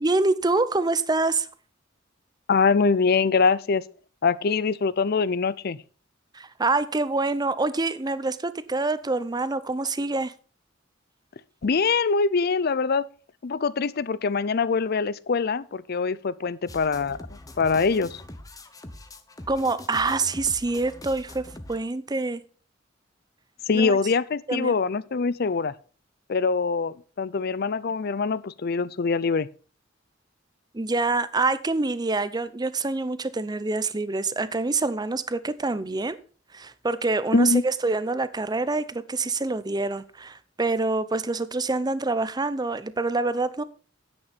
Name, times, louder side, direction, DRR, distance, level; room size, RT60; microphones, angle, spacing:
voice 1, 0.0-1.5 6.3-10.3 19.5-22.4 23.7-24.0 24.5-24.7 30.7-36.2 36.5-43.6, right 3 dB, 20° right, 0.6 m, -26 dB
voice 2, 2.5-3.8 4.2-5.8 11.6-13.1 13.4-18.2 23.7-25.7 26.3-29.5 37.3-37.6, left 4 dB, 55° left, 0.5 m, -24 dB
sound 1, 16.7-21.8, left 1 dB, 20° left, 1.0 m, -43 dB
10.0 x 8.6 x 4.1 m
head